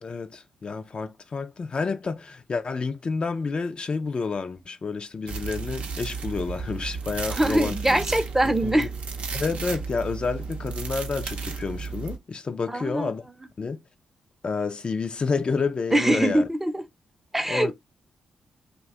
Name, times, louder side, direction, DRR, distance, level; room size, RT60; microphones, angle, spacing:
voice 1, 0.0-7.7 8.4-8.9 9.3-13.2 13.6-13.8 14.4-16.5 17.5-17.7, left 4 dB, 45° left, 0.4 m, -29 dB
sound 1, 5.3-12.2, right 5 dB, 65° right, 0.6 m, -33 dB
voice 2, 7.3-8.9 12.7-13.1 15.9-16.9 17.3-17.7, right 1 dB, 15° right, 0.6 m, -23 dB
2.6 x 2.2 x 3.6 m
supercardioid pair, 50°, 2 cm